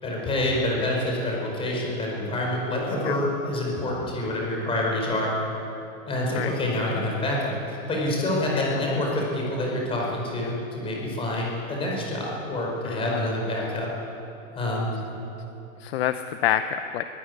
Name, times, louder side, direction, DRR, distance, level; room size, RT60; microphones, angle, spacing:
voice 1, 0.0-5.4 6.0-13.9 14.5-15.0, left 1 dB, 15° left, -2 dB, 4.9 m, -27 dB
voice 2, 12.8-13.3 15.8-17.0, left 11 dB, 45° left, 10 dB, 0.8 m, -27 dB
23.0 x 15.5 x 9.6 m, 3.0 s
supercardioid pair, 165°, 41 cm